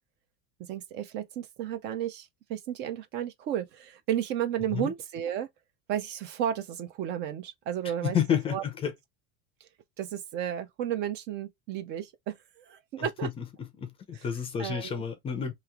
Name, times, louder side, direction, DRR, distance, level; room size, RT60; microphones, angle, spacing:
voice 1, 0.6-5.5 5.9-8.2 8.5-8.6 9.6-9.7 10.0-13.3 14.6-15.0, right 10 dB, 35° right, 0.4 m, -33 dB
voice 2, 8.0-8.9 13.0-13.4 13.8-15.5, left 8 dB, 15° left, 0.5 m, -30 dB
3.0 x 2.9 x 3.5 m
cardioid pair, 170°, 32 cm